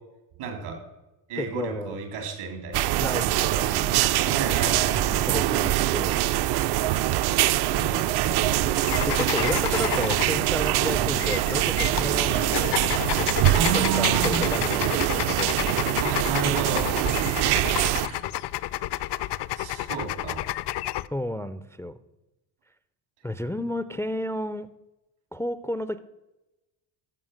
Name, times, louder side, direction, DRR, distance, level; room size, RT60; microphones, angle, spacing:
voice 1, 0.4-0.8 1.3-2.9 4.3-5.4 7.3-8.4 10.8-11.1 13.5-14.4 16.0-16.9 18.1-18.2 19.5-20.4, right 5 dB, 85° right, 4 dB, 3.1 m, -31 dB
voice 2, 1.4-2.0 3.0-4.4 5.3-6.2 8.5-8.8 9.0-12.8 13.7-15.6 21.1-21.9 23.2-24.7 25.3-26.0, left 1 dB, 5° left, 13 dB, 0.3 m, -32 dB
sound 1, 2.7-18.1, right 14 dB, 55° right, 0.5 m, -24 dB
sound 2, 8.8-21.1, left 15 dB, 60° left, 0.5 m, -31 dB
sound 3, 11.5-17.3, left 7 dB, 85° left, 1.3 m, -43 dB
13.5 x 5.4 x 6.4 m, 1.0 s
cardioid pair, 95°, 48 cm